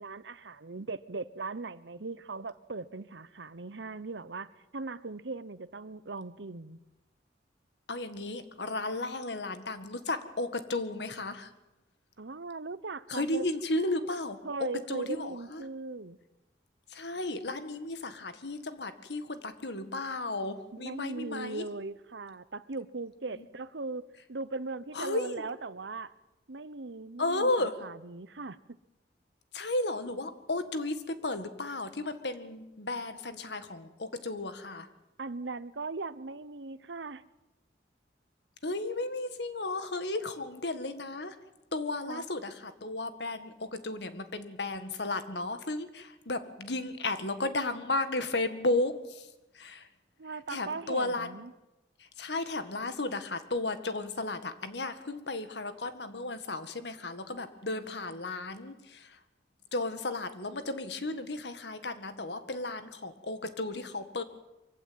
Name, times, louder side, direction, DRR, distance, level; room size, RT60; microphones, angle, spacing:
voice 1, 0.0-6.8 12.2-13.4 14.4-16.2 20.7-26.1 26.5-28.8 35.2-37.2 42.1-42.2 50.2-51.5, right 3 dB, 75° right, 16 dB, 1.0 m, -39 dB
voice 2, 7.9-11.5 13.1-15.6 16.9-21.6 23.4-23.5 24.9-25.4 27.2-27.8 29.5-34.9 38.6-41.4 41.7-49.3 49.5-49.9 50.5-51.4 52.0-59.2 59.7-64.2, left 2 dB, 70° left, 10 dB, 1.9 m, -34 dB
24.0 x 16.0 x 9.4 m, 0.98 s
head